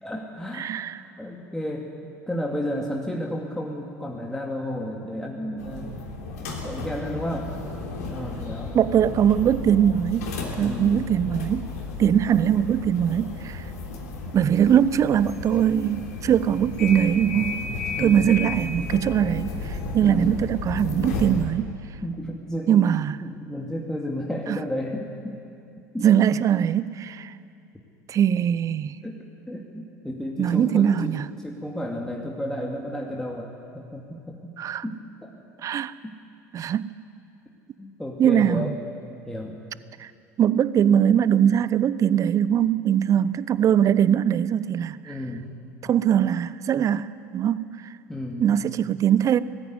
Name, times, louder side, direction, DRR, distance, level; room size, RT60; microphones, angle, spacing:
voice 1, 0.0-0.8 1.2-1.9 2.3-5.9 6.6-7.5 8.1-8.8 10.6-11.0 17.9-18.3 20.0-20.3 21.0-21.1 22.0-22.8 23.2-25.4 25.9-26.3 29.0-31.2 31.4-34.5 34.8-35.3 36.0-36.2 37.8-38.8 39.2-39.6 45.0-45.5 48.1-48.5, left 1 dB, 5° left, 2.3 m, -32 dB
voice 2, 0.6-1.0 8.7-10.3 10.6-11.7 12.0-13.7 14.3-17.6 18.0-21.7 22.7-23.2 24.5-24.6 26.0-27.3 28.1-29.0 30.4-31.3 34.6-34.8 35.6-35.9 36.5-36.9 38.2-38.7 40.0-40.1 40.4-45.2 45.8-47.7 48.4-49.4, right 9 dB, 40° right, 0.7 m, -21 dB
sound 1, 5.6-21.5, left 3 dB, 75° left, 3.3 m, -33 dB
19.5 x 14.0 x 9.7 m
hypercardioid pair, 70°, 9 cm